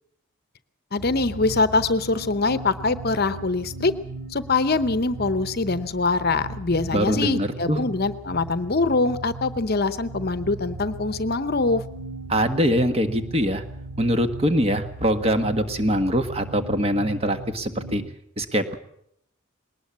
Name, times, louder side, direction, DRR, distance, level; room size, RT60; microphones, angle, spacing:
voice 1, 0.9-3.9 4.3-11.8, left 3 dB, 50° left, 12 dB, 0.8 m, -23 dB
sound 1, 1.0-18.1, right 3 dB, 55° right, 2.5 m, -38 dB
voice 2, 6.9-7.8 12.3-13.6 14.0-18.0 18.4-18.8, equal, 30° right, 8 dB, 1.5 m, -23 dB
21.0 x 19.0 x 7.4 m, 0.73 s
head